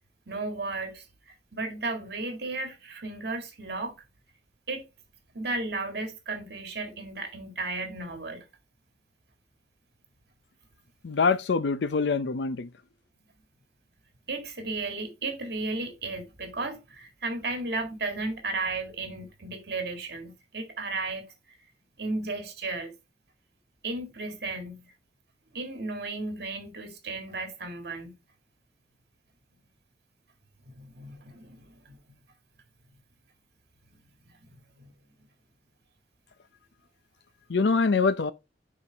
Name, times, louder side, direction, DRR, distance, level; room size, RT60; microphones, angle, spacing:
voice 1, 0.3-4.0 4.7-4.8 5.3-8.4 14.3-21.3 22.0-22.9 23.8-24.9 25.5-28.1 30.7-32.0 34.5-34.9, right 3 dB, 65° right, 2.0 m, -34 dB
voice 2, 11.0-12.7 37.5-38.3, left 4 dB, 85° left, 0.6 m, -24 dB
6.9 x 4.7 x 3.4 m
head